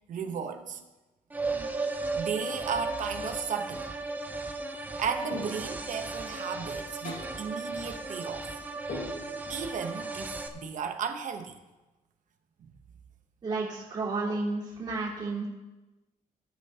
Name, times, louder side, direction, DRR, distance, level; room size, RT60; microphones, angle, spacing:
voice 1, 0.1-0.8 1.5-1.8 2.1-3.9 5.0-8.5 9.5-11.5, right 6 dB, 55° right, 6 dB, 1.0 m, -35 dB
sound 1, 1.3-10.5, right 3 dB, 10° right, 0.6 m, -35 dB
sound 2, 5.3-5.9 7.0-7.5 8.9-9.6, left 2 dB, 85° left, 3.7 m, -39 dB
voice 2, 13.4-15.5, right 3 dB, 35° right, -12 dB, 3.6 m, -32 dB
17.0 x 8.9 x 2.9 m, 1.1 s
wide cardioid pair, 175°, 15 cm